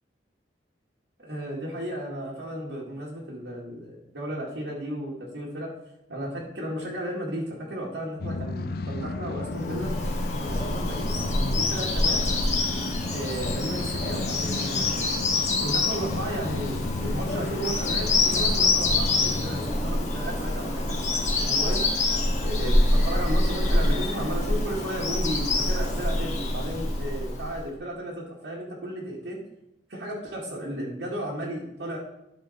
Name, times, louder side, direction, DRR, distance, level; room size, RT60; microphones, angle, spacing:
voice 1, 1.2-5.7 6.1-9.9 10.4-12.2 13.1-15.0 15.6-21.8 22.4-29.4 29.9-32.0, right 1 dB, 75° right, -5 dB, 1.8 m, -34 dB
sound 1, 8.2-19.7, left 3 dB, 55° left, 0.5 m, -34 dB
Bird vocalization bird call bird song, 9.6-27.6, left 2 dB, 40° left, 1.7 m, -26 dB
11.5 x 5.0 x 4.1 m, 0.86 s
head